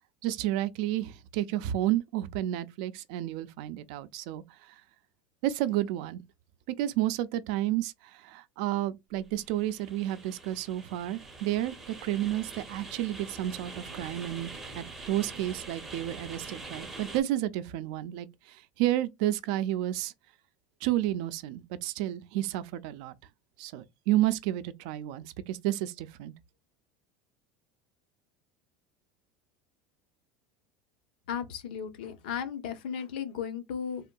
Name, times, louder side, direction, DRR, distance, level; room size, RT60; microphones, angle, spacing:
voice 1, 0.2-4.4 5.4-6.2 6.7-14.5 14.7-20.1 20.8-23.1 23.6-26.3, right 14 dB, 55° right, 0.4 m, -31 dB
sound 1, 9.2-17.2, right 3 dB, 5° right, 0.6 m, -44 dB
voice 2, 31.3-34.1, left 8 dB, 90° left, 0.8 m, -35 dB
3.5 x 2.6 x 2.2 m
cardioid pair, 180°, 5 cm